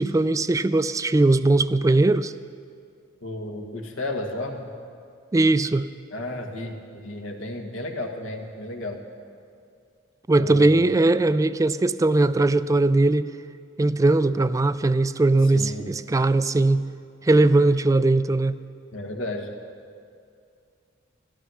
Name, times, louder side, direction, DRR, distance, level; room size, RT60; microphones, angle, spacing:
voice 1, 0.0-2.3 5.3-5.9 10.3-13.3 13.8-16.8 17.2-18.6, right 2 dB, 15° right, 14 dB, 0.3 m, -20 dB
voice 2, 3.2-4.7 6.1-6.8 7.0-9.0 10.4-10.7 15.5-15.9 18.9-19.5, left 1 dB, 85° left, 3 dB, 1.5 m, -32 dB
14.0 x 12.5 x 6.3 m, 2.4 s
head